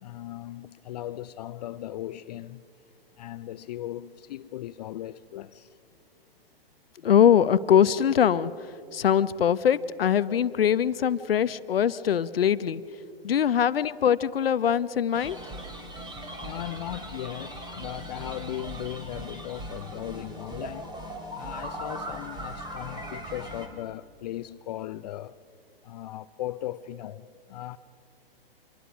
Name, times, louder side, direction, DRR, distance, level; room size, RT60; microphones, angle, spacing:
voice 1, 0.0-2.6 3.2-5.8 16.4-20.9 21.3-25.4 25.8-27.8, left 13 dB, 45° left, 0.5 m, -37 dB
voice 2, 7.0-12.8 13.2-15.4, left 9 dB, 70° left, 0.8 m, -22 dB
sound 1, 15.1-23.7, right 1 dB, 15° right, 2.9 m, -39 dB
25.5 x 22.0 x 6.1 m
figure-of-eight pair, 115°, 30 cm